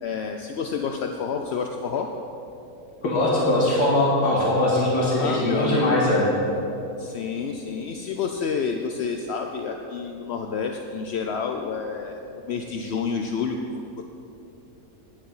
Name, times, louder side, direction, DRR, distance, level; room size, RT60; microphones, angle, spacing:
voice 1, 0.0-2.1 5.2-6.0 7.0-12.2 12.5-14.0, left 5 dB, 65° left, 4 dB, 0.6 m, -29 dB
voice 2, 3.0-6.3, left 1 dB, 90° left, -5 dB, 2.6 m, -21 dB
9.9 x 9.8 x 5.5 m, 2.9 s
omnidirectional pair, 1.7 m